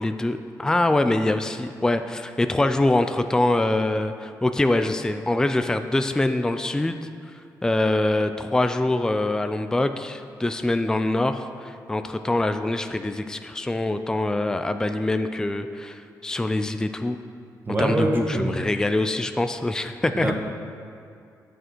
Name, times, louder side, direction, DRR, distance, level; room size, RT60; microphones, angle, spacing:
voice 1, 0.0-7.1 7.6-17.2 17.8-20.3, left 2 dB, 10° left, 8 dB, 0.4 m, -24 dB
voice 2, 17.7-18.5 20.2-20.3, right 1 dB, 30° right, 1 dB, 1.1 m, -24 dB
8.7 x 6.6 x 4.5 m, 2.5 s
cardioid pair, 90°, 7 cm